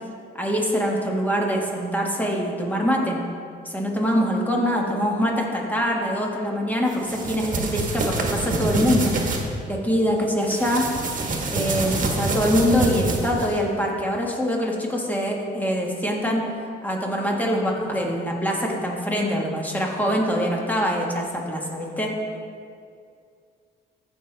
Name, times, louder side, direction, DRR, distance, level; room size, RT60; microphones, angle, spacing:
voice 1, 0.3-3.2 3.6-9.2 9.7-10.9 11.5-16.5 16.8-22.2, equal, 10° left, -1 dB, 1.6 m, -24 dB
sound 1, 6.9-9.4 10.4-13.6, right 3 dB, 40° right, 1.4 m, -26 dB
14.0 x 5.6 x 3.4 m, 2.3 s
cardioid pair, 90°, 20 cm